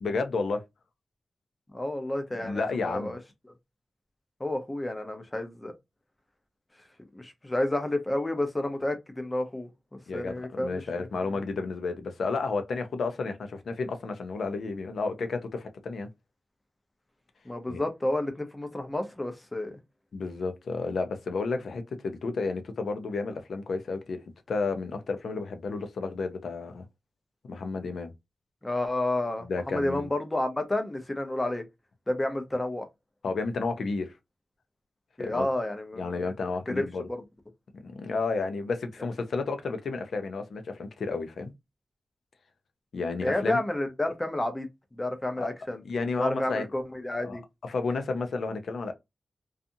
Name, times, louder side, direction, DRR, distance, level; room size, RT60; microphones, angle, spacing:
voice 1, 0.0-0.6 2.4-3.2 10.1-16.1 17.7-17.8 20.1-24.2 24.5-26.8 27.5-28.1 29.4-30.1 33.2-34.1 35.2-35.5 36.0-37.1 37.8-41.5 42.9-43.6 45.4-45.5 45.8-46.7 47.2-48.9, left 4 dB, 75° left, 0.5 m, -31 dB
voice 2, 1.7-3.2 4.4-5.7 7.1-9.7 10.1-11.1 17.4-19.8 28.6-31.6 32.1-32.9 35.2-36.3 36.7-36.8 37.1-37.2 43.2-45.8 46.2-47.4, left 1 dB, 15° left, 0.6 m, -30 dB
2.6 x 2.4 x 2.6 m
wide cardioid pair, 120°, 0 cm